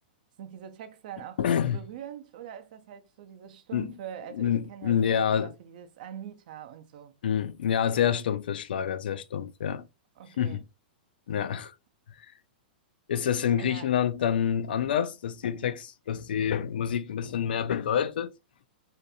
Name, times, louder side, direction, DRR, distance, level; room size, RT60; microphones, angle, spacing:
voice 1, 0.4-1.4 1.7-7.2 10.2-10.6 13.6-14.0, right 9 dB, 60° right, 0.5 m, -43 dB
voice 2, 1.4-1.8 3.7-3.9 4.3-5.5 7.2-9.9 10.4-10.6 11.3-11.7 13.1-18.3, left 8 dB, 80° left, 0.3 m, -27 dB
2.6 x 2.2 x 2.6 m
hypercardioid pair, 145°, 5 cm